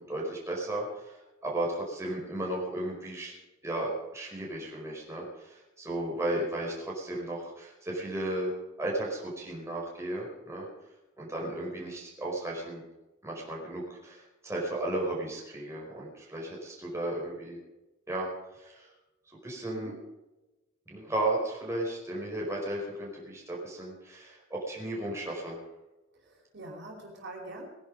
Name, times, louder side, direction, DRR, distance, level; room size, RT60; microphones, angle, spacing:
voice 1, 0.0-3.3 3.6-8.5 8.8-10.7 11.2-12.8 13.2-17.6 18.1-18.3 18.5-18.9 19.4-19.9 20.9-25.6, right 1 dB, 15° right, -3 dB, 4.9 m, -34 dB
voice 2, 26.1-27.7, right 2 dB, 60° right, 0 dB, 5.0 m, -44 dB
21.5 x 11.0 x 5.3 m, 1.0 s
head